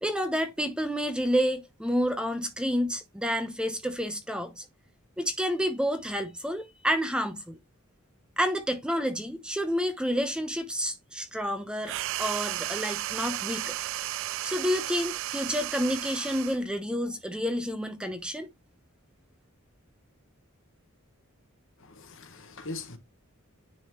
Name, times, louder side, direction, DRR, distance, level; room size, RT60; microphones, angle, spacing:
voice 1, 0.0-4.6 5.2-7.6 8.4-13.8 14.4-18.5, equal, 5° right, 0.9 m, -29 dB
sound 1, 11.8-16.6, right 14 dB, 65° right, 0.3 m, -34 dB
voice 2, 21.8-23.0, left 3 dB, 65° left, 1.4 m, -41 dB
10.0 x 3.9 x 3.0 m
head